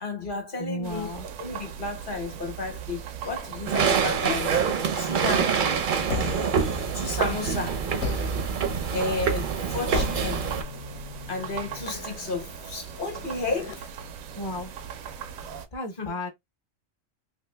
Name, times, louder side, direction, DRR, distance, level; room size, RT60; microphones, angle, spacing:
voice 1, 0.0-1.1 1.4-4.6 5.0-5.5 6.9-7.8 8.9-10.4 11.3-13.9 16.0-16.1, left 3 dB, 45° left, 1.0 m, -32 dB
voice 2, 0.6-1.3 14.4-14.7 15.7-16.3, left 1 dB, 30° left, 0.6 m, -33 dB
sound 1, 0.8-15.7, right 7 dB, 85° right, 1.0 m, -40 dB
sound 2, 3.7-10.6, right 6 dB, 60° right, 0.5 m, -26 dB
sound 3, 6.1-7.4 8.0-13.7, left 7 dB, 75° left, 0.9 m, -37 dB
2.8 x 2.5 x 3.2 m
omnidirectional pair, 1.4 m